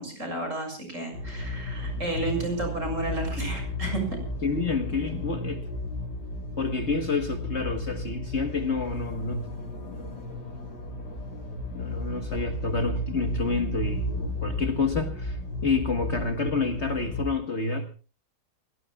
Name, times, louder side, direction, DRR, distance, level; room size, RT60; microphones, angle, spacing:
voice 1, 0.0-4.2, right 2 dB, 50° right, 7.3 m, -32 dB
sound 1, 1.1-17.3, left 1 dB, 90° left, 3.7 m, -34 dB
voice 2, 4.4-5.6 6.6-9.5 9.8-10.2 11.7-17.9, left 4 dB, 45° left, 1.7 m, -29 dB
29.5 x 17.5 x 2.3 m
omnidirectional pair, 1.8 m